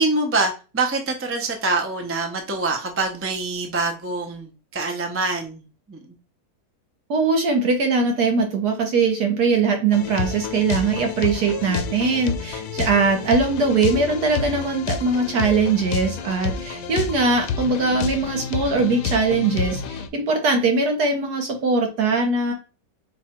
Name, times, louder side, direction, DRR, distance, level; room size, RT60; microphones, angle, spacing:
voice 1, 0.0-6.0, right 3 dB, 20° right, 3 dB, 0.3 m, -25 dB
voice 2, 7.1-22.5, right 4 dB, 75° right, 4 dB, 1.6 m, -21 dB
sound 1, 9.9-20.1, left 6 dB, 90° left, 1.2 m, -29 dB
4.8 x 2.4 x 4.3 m, 0.33 s
omnidirectional pair, 1.7 m